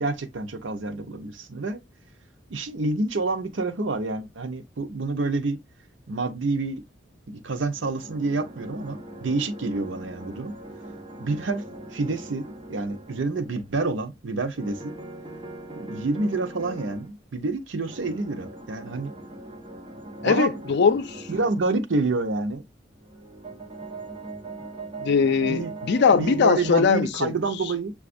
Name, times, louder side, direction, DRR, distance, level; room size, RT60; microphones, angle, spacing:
voice 1, 0.0-1.8 2.5-5.6 6.1-6.8 7.3-10.5 11.2-11.6 11.9-14.9 15.7-19.1 20.2-20.6 21.3-22.6 25.4-25.7 26.1-27.9, right 3 dB, 80° right, 0.6 m, -28 dB
sound 1, 7.6-13.7 14.5-17.1 17.8-21.6 23.0-26.7, right 2 dB, 30° right, 0.9 m, -41 dB
voice 2, 20.2-21.3 25.0-27.3, left 5 dB, 65° left, 0.4 m, -21 dB
6.8 x 2.4 x 2.5 m
head